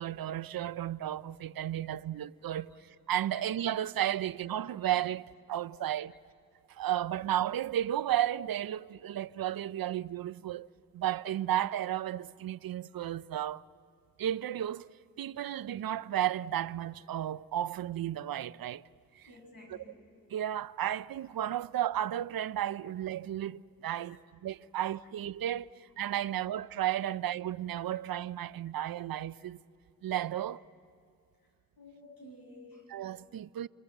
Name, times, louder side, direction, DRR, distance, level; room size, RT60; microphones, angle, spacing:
voice 1, 0.0-2.7 3.1-6.1 6.7-10.7 10.9-13.6 14.2-14.9 15.2-18.8 19.1-19.3 19.7-19.8 20.3-29.6 30.0-30.6 32.9-33.7, right 11 dB, 75° right, 0.5 m, -33 dB
voice 2, 5.7-6.2 19.3-20.0 26.2-26.3 27.1-27.2 31.8-32.9, left 1 dB, 75° left, 8.0 m, -53 dB
28.0 x 22.5 x 7.9 m
cardioid pair, 65°, 35 cm